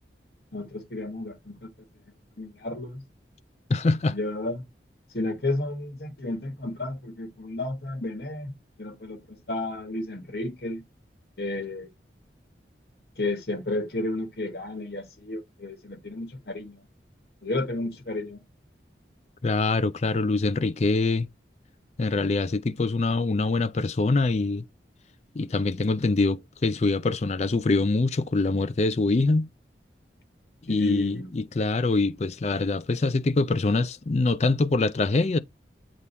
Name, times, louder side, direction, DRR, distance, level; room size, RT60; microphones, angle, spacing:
voice 1, 0.5-1.7 2.4-3.0 4.1-4.6 5.1-8.5 8.8-10.8 11.4-11.9 13.2-16.8 17.4-18.4 30.7-31.3, left 2 dB, 60° left, 1.3 m, -32 dB
voice 2, 3.7-4.2 19.4-21.3 22.0-24.6 25.3-29.5 30.6-35.4, left 3 dB, 35° left, 0.4 m, -24 dB
8.3 x 3.8 x 4.3 m
head